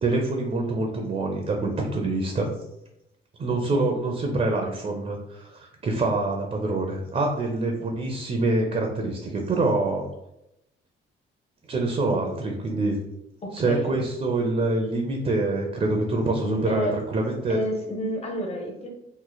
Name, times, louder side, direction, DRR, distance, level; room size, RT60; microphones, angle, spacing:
voice 1, 0.0-2.5 3.4-10.1 11.7-13.0 13.5-17.6, right 2 dB, 35° right, 2 dB, 0.6 m, -25 dB
voice 2, 13.4-13.9 16.4-16.9 17.5-18.9, equal, 30° left, 1 dB, 0.9 m, -30 dB
3.1 x 2.0 x 3.9 m, 0.85 s
cardioid pair, 90°, 20 cm